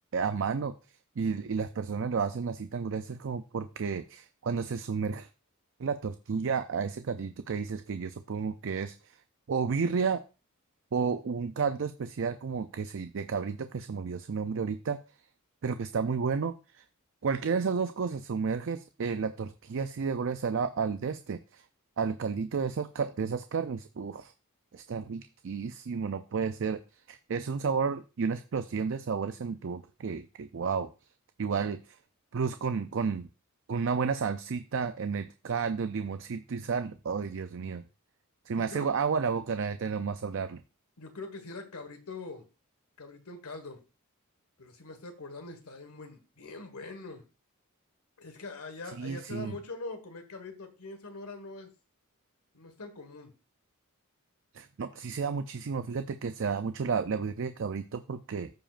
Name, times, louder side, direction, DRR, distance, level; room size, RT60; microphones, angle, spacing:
voice 1, 0.1-0.7 1.2-5.3 5.8-9.2 9.5-10.2 10.9-15.0 15.6-16.8 17.2-21.6 22.0-24.3 24.7-26.8 27.1-30.9 31.4-32.0 32.3-33.3 33.7-37.8 38.5-40.6 49.0-49.6 54.5-58.5, right 5 dB, 60° right, 10 dB, 0.4 m, -32 dB
voice 2, 38.6-38.9 41.0-42.4 43.0-43.8 44.6-47.2 48.2-51.7 52.5-53.3, left 3 dB, 85° left, 6 dB, 1.5 m, -43 dB
14.0 x 5.0 x 2.5 m, 0.31 s
head